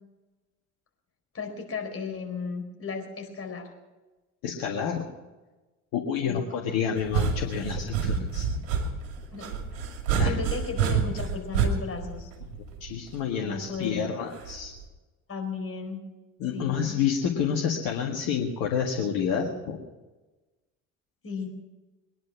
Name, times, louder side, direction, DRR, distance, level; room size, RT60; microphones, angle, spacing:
voice 1, 1.3-3.7 6.3-6.5 9.3-9.9 10.2-12.3 13.4-14.0 15.3-16.0 16.5-17.0 21.2-21.5, left 4 dB, 35° left, 3 dB, 4.4 m, -35 dB
voice 2, 4.4-5.1 5.9-8.5 10.2-10.3 12.8-14.7 16.4-19.8, left 7 dB, 65° left, 0 dB, 1.9 m, -29 dB
sound 1, 7.0-13.1 14.4-14.8, right 6 dB, 75° right, 2.5 m, -28 dB
22.0 x 10.5 x 6.1 m, 1.2 s
hypercardioid pair, 55°, 39 cm